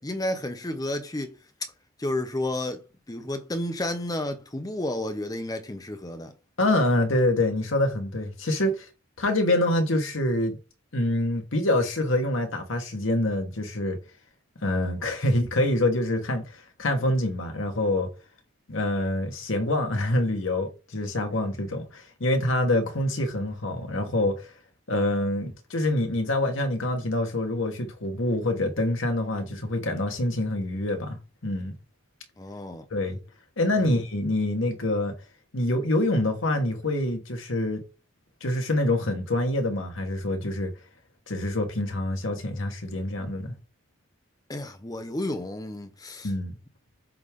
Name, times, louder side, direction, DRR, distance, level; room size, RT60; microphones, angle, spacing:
voice 1, 0.0-1.4 2.0-6.3 32.4-32.9 33.8-34.0 44.5-46.3, left 1 dB, 20° left, 0.7 m, -31 dB
voice 2, 6.6-8.9 9.2-10.6 10.9-14.0 14.6-16.4 16.8-18.1 18.7-24.5 24.9-31.2 31.4-31.7 32.9-33.2 33.6-35.1 35.5-37.8 38.4-40.7 41.3-43.5 46.2-46.6, left 1 dB, 85° left, 1.4 m, -26 dB
7.8 x 3.4 x 3.6 m
head